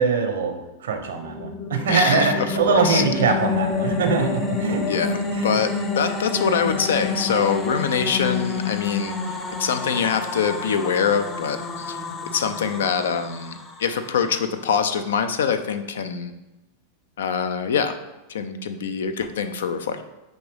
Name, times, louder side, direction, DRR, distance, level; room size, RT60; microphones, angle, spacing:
voice 1, 0.0-4.8 5.3-5.5, right 5 dB, 80° right, 5 dB, 0.6 m, -23 dB
sound 1, 1.1-14.4, left 4 dB, 25° left, 0.5 m, -28 dB
voice 2, 1.9-3.0 4.9-9.2 9.6-12.0 12.3-16.3 17.2-18.0 18.3-20.0, left 6 dB, 80° left, 9 dB, 0.4 m, -24 dB
5.8 x 2.6 x 3.3 m, 1.0 s
hypercardioid pair, 110°, 0 cm